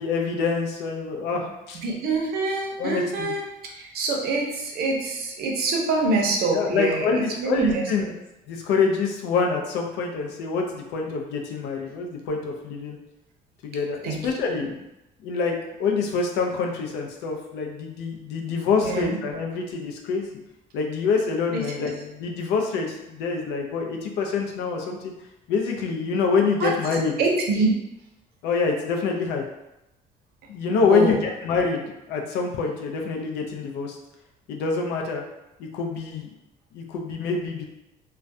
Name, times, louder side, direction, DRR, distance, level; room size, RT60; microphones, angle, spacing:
voice 1, 0.0-1.8 2.8-3.4 6.5-8.1 8.5-13.0 13.6-14.7 15.2-20.3 20.7-25.1 25.5-27.1 28.4-29.4 30.5-34.0 34.5-35.2 35.6-36.3 36.7-37.6, left 5 dB, 85° left, 1 dB, 0.5 m, -26 dB
voice 2, 1.8-3.4 3.7-8.1 14.0-14.2 18.8-19.2 21.5-21.6 26.6-26.7 27.2-27.7 30.8-31.2, right 3 dB, 70° right, 0 dB, 0.6 m, -25 dB
2.3 x 2.1 x 2.6 m, 0.91 s
cardioid pair, 110°, 17 cm